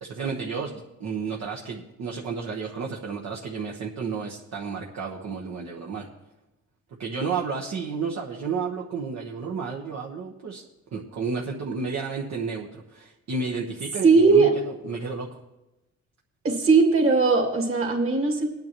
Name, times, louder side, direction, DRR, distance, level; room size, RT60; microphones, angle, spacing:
voice 1, 0.0-6.1 7.0-10.6 10.9-15.4, right 5 dB, 65° right, -1 dB, 1.3 m, -32 dB
voice 2, 14.0-14.5 16.4-18.5, right 4 dB, 45° right, 1 dB, 2.6 m, -19 dB
20.0 x 9.5 x 3.1 m, 0.99 s
cardioid pair, 90°, 30 cm